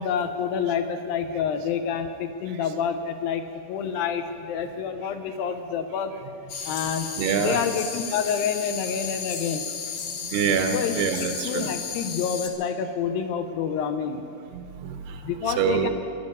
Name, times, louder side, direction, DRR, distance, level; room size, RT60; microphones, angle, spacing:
voice 1, 0.0-6.1 6.7-7.1 7.4-9.6 10.7-11.0 11.4-14.3 15.2-15.9, left 7 dB, 75° left, 7 dB, 2.4 m, -28 dB
sound 1, 6.5-12.5, left 6 dB, 60° left, 2.3 m, -34 dB
voice 2, 7.2-7.6 10.3-11.7 14.5-15.9, right 7 dB, 80° right, 6 dB, 2.9 m, -26 dB
20.5 x 12.0 x 5.4 m, 2.6 s
omnidirectional pair, 4.5 m